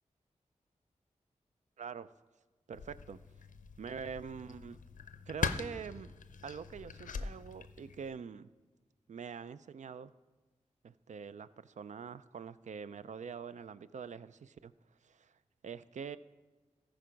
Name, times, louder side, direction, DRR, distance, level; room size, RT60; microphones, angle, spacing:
voice 1, 1.8-2.1 2.7-3.2 3.8-4.8 5.3-6.1 6.4-8.5 9.1-10.1 10.8-14.7 15.0-15.4 15.6-16.2, right 6 dB, 65° right, 15 dB, 0.4 m, -44 dB
sound 1, 2.7-8.1, left 5 dB, 85° left, 0.5 m, -41 dB
14.5 x 4.9 x 5.1 m, 1.3 s
cardioid pair, 55°, 13 cm